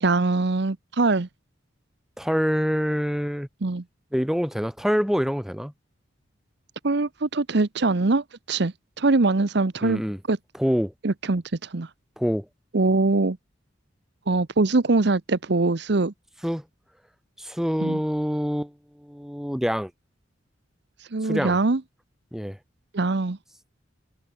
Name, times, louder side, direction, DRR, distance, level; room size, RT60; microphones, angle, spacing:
voice 1, 0.0-1.3 3.6-3.8 6.8-10.0 10.3-10.4 11.0-11.9 12.7-13.4 14.3-16.1 17.8-18.0 21.1-21.8 22.9-23.4, right 3 dB, 60° right, 0.8 m, -22 dB
voice 2, 2.2-3.5 4.1-5.7 9.8-10.2 10.6-10.9 12.2-12.5 16.4-16.6 17.4-19.9 21.2-21.6 22.3-22.6, equal, ahead, 2.9 m, -26 dB
head